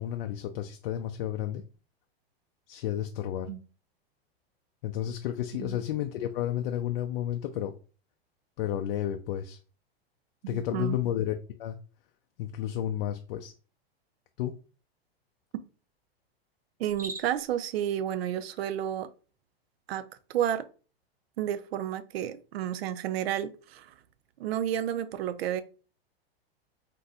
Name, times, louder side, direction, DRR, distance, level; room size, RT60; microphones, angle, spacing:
voice 1, 0.0-1.6 2.7-3.5 4.8-7.7 8.6-9.6 10.5-11.8 12.4-13.5 14.4-14.5, left 11 dB, 65° left, 0.5 m, -32 dB
voice 2, 10.4-11.0 16.8-19.1 19.9-20.0 20.3-20.6 21.4-23.9 24.4-25.6, right 10 dB, 75° right, 0.5 m, -31 dB
Cricket, 16.8-17.6, right 2 dB, 10° right, 0.4 m, -41 dB
2.6 x 2.2 x 3.9 m
hypercardioid pair, 120°, 31 cm